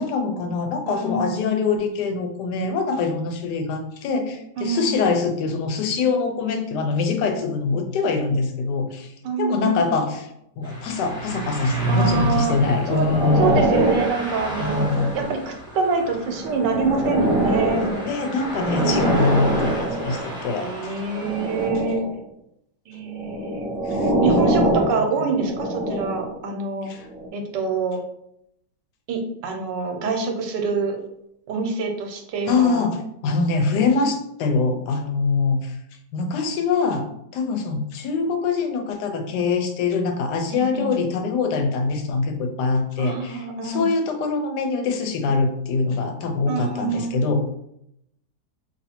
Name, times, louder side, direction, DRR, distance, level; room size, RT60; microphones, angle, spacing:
voice 1, 0.0-9.1 9.4-10.3 10.6-13.7 14.6-15.1 18.0-21.0 23.8-24.1 24.5-25.0 26.8-27.1 32.5-35.8 36.1-47.4, left 4 dB, 80° left, 5 dB, 1.2 m, -24 dB
voice 2, 0.9-1.6 4.6-5.1 9.2-9.9 11.9-12.6 12.9-13.1 13.4-14.9 15.1-17.9 18.7-19.5 20.6-22.0 22.9-23.7 24.2-26.9 27.3-28.0 29.1-31.0 31.5-32.8 40.5-41.0 43.0-43.9 46.5-47.3, right 4 dB, 85° right, 4 dB, 1.3 m, -26 dB
sound 1, 10.6-21.7, right 1 dB, 5° right, 0.5 m, -31 dB
sound 2, 12.4-15.5 16.1-20.4 21.1-22.2 23.1-26.4 27.1-27.3, right 1 dB, 60° right, 1.1 m, -24 dB
2.8 x 2.6 x 4.2 m, 0.77 s
omnidirectional pair, 1.9 m